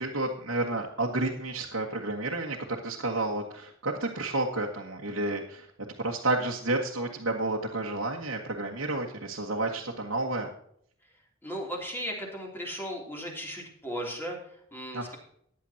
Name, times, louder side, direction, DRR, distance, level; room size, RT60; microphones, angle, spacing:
voice 1, 0.0-5.7 6.0-10.5 14.9-15.1, right 2 dB, 85° right, -2 dB, 1.6 m, -31 dB
voice 2, 11.4-14.4 14.7-15.2, equal, 10° left, -1 dB, 3.0 m, -36 dB
15.5 x 10.5 x 2.9 m, 0.67 s
head